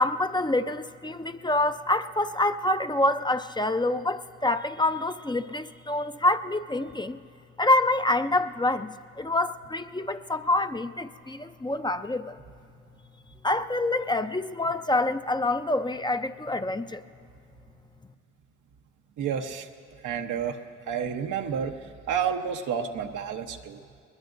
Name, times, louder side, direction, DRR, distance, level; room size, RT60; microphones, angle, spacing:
voice 1, 0.0-7.2 7.6-12.4 13.4-17.0, left 2 dB, 15° left, 0.6 m, -26 dB
voice 2, 19.2-19.7 20.0-20.6 20.9-21.8 22.1-23.8, right 7 dB, 80° right, 1.0 m, -30 dB
21.5 x 21.0 x 2.6 m
supercardioid pair, 55°, 30 cm